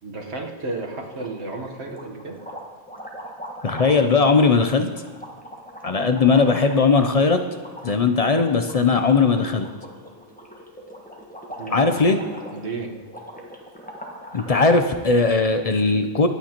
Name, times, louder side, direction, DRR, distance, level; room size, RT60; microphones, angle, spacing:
voice 1, 0.0-2.4 11.6-11.9 12.5-13.0, right 3 dB, 70° right, 1 dB, 1.6 m, -32 dB
sound 1, 0.9-1.5 1.9-14.6, equal, 10° left, 1.3 m, -40 dB
voice 2, 3.6-4.9 5.8-7.4 7.8-9.7 11.7-12.2 14.3-16.3, left 4 dB, 45° left, 7 dB, 0.6 m, -18 dB
24.0 x 8.8 x 2.9 m, 1.4 s
omnidirectional pair, 1.2 m